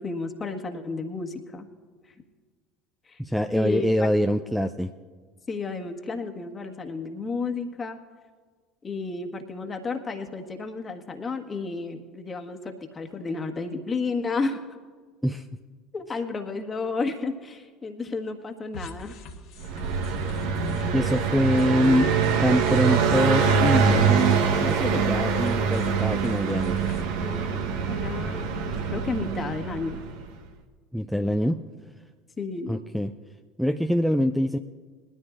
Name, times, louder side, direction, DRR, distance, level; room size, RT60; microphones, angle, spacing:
voice 1, 0.0-1.7 3.1-3.2 3.5-4.4 5.5-8.0 8.8-14.6 15.9-19.2 27.2-30.0 32.4-32.8, left 4 dB, 30° left, 4 dB, 1.5 m, -32 dB
voice 2, 3.2-4.9 15.2-15.5 20.9-22.1 22.4-26.9 30.9-31.6 32.7-33.1 33.6-34.6, equal, ahead, 6 dB, 0.5 m, -24 dB
sound 1, 18.7-27.0, left 1 dB, 60° left, 1.7 m, -42 dB
Car passing by, 19.6-30.2, right 6 dB, 65° right, 1.1 m, -24 dB
21.5 x 13.0 x 2.5 m, 1.5 s
figure-of-eight pair, 65°, 0 cm